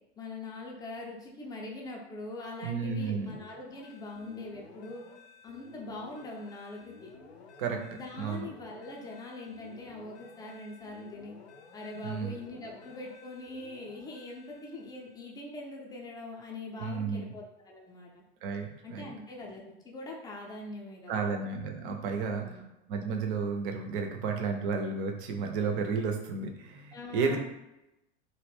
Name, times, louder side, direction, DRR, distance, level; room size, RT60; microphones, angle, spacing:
voice 1, 0.2-5.0 5.4-7.1 7.9-11.3 11.7-18.1 18.8-21.4 22.2-22.6 26.9-27.4, left 2 dB, 10° left, -1 dB, 0.5 m, -42 dB
voice 2, 2.6-3.3 7.6-7.8 8.2-8.5 12.0-12.3 16.8-17.3 18.4-19.1 21.1-22.4 22.9-27.4, right 5 dB, 50° right, 4 dB, 0.5 m, -32 dB
sound 1, 3.1-15.3, left 4 dB, 75° left, 0.5 m, -54 dB
2.4 x 2.1 x 3.3 m, 0.93 s
figure-of-eight pair, 80°, 34 cm